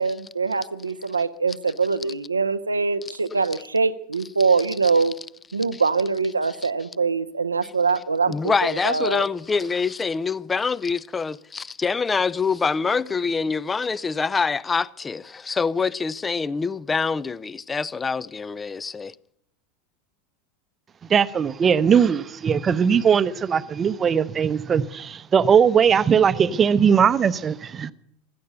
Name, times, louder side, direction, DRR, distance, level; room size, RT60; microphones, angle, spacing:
voice 1, 0.0-5.1 5.5-9.2, right 4 dB, 90° right, 0.6 m, -23 dB
voice 2, 8.3-19.1, left 5 dB, 20° left, 0.5 m, -25 dB
voice 3, 21.1-27.9, right 7 dB, 30° right, 0.8 m, -19 dB
16.0 x 13.0 x 6.7 m
figure-of-eight pair, 85°, 0 cm